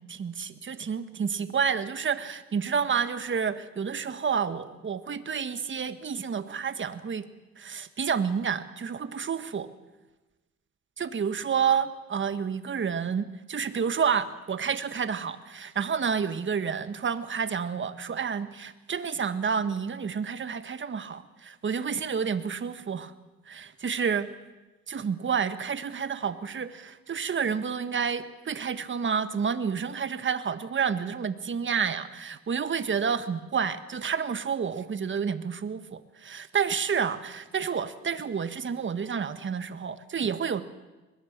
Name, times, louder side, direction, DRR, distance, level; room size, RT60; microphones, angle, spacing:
voice 1, 0.0-7.3 7.6-9.7 11.0-23.1 23.5-24.3 24.9-40.6, right 6 dB, 40° right, 11 dB, 1.6 m, -29 dB
23.0 x 20.5 x 7.4 m, 1.1 s
cardioid pair, 90°, 30 cm